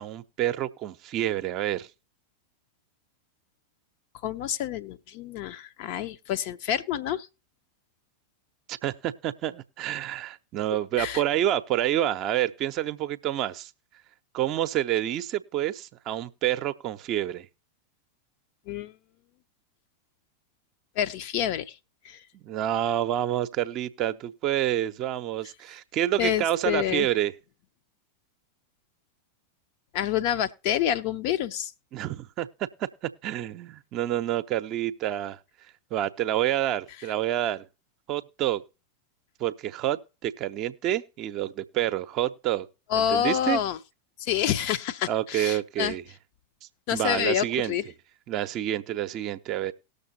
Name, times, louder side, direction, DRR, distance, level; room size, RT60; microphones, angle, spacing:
voice 1, 0.0-1.9 8.7-13.7 14.3-17.5 22.3-27.3 31.9-35.4 35.9-37.7 38.1-38.6 39.4-42.7 42.9-43.6 45.1-46.0 46.9-47.7 48.3-49.7, right 12 dB, 35° right, 0.6 m, -28 dB
voice 2, 4.2-7.3 11.0-11.2 18.7-18.9 21.0-21.8 22.0-22.2 26.2-27.1 29.9-31.7 42.9-43.8 44.2-45.9 46.9-47.8, left 10 dB, 45° left, 0.5 m, -28 dB
19.0 x 6.6 x 2.7 m
figure-of-eight pair, 90°, 0 cm